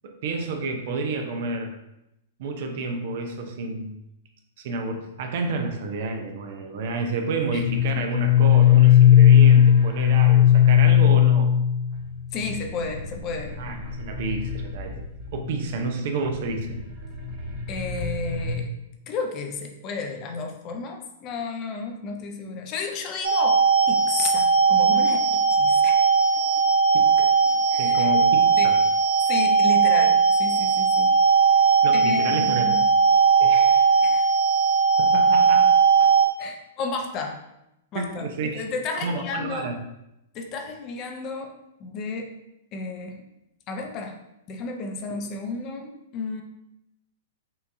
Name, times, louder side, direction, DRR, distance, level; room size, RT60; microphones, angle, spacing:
voice 1, 0.0-1.7 2.4-4.0 4.6-11.5 13.6-15.0 15.3-16.8 26.9-28.8 31.8-32.7 33.4-33.9 35.0-35.7 36.0-36.1 37.9-38.6 38.9-39.8 45.1-45.2, right 3 dB, 55° right, 4 dB, 0.6 m, -30 dB
sound 1, 7.4-15.6 16.2-18.5, left 10 dB, 35° right, 0.9 m, -18 dB
voice 2, 12.3-13.6 17.7-18.7 19.1-23.6 23.9-26.0 26.3-26.6 27.4-28.1 28.6-28.7 29.3-31.1 31.9-32.8 34.0-34.3 36.4-37.4 37.9-39.7 40.3-41.5 41.8-42.3 42.7-43.2 43.7-44.2 44.5-46.4, left 4 dB, 35° left, 3 dB, 0.6 m, -32 dB
sound 2, 23.2-36.3, right 5 dB, 85° right, 0.8 m, -19 dB
5.6 x 2.7 x 2.6 m, 0.87 s
hypercardioid pair, 110°, 0 cm